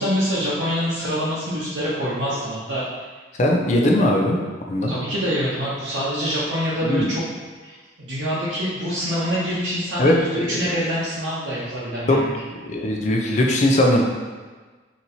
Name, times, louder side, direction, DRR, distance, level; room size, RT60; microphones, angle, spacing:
voice 1, 0.0-3.1 4.9-7.2 7.6-12.3, equal, 90° right, -9 dB, 0.7 m, -25 dB
voice 2, 3.4-4.4 4.7-4.9 6.8-7.1 10.0-10.1 12.1-12.2 12.7-14.0, left 1 dB, 40° left, 0 dB, 0.4 m, -19 dB
4.1 x 2.9 x 2.7 m, 1.4 s
head